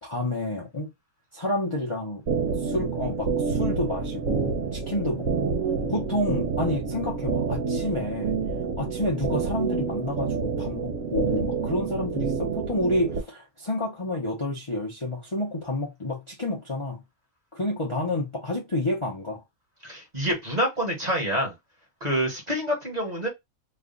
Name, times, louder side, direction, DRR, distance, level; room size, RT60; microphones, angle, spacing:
voice 1, 0.0-0.9 1.3-2.2 2.6-5.5 5.9-8.3 8.8-17.0 17.5-19.4, left 1 dB, 25° left, 0.8 m, -29 dB
sound 1, 2.3-13.2, right 5 dB, 65° right, 0.9 m, -28 dB
voice 2, 19.8-21.5 22.0-23.3, equal, 30° right, 1.2 m, -27 dB
3.2 x 2.4 x 3.8 m
omnidirectional pair, 1.5 m